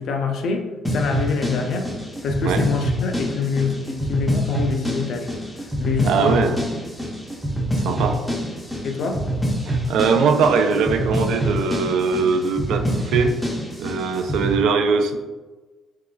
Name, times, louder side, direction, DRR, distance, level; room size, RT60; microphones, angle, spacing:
voice 1, 0.0-1.9 2.2-5.3 5.8-6.5 8.8-9.2, left 5 dB, 60° left, 4 dB, 0.4 m, -25 dB
sound 1, 0.8-14.6, equal, 5° left, 0.5 m, -26 dB
voice 2, 6.0-6.6 7.8-8.2 9.7-13.4 13.8-15.2, right 5 dB, 85° right, 6 dB, 0.3 m, -21 dB
3.7 x 3.1 x 2.2 m, 1.2 s
cardioid pair, 155°, 0 cm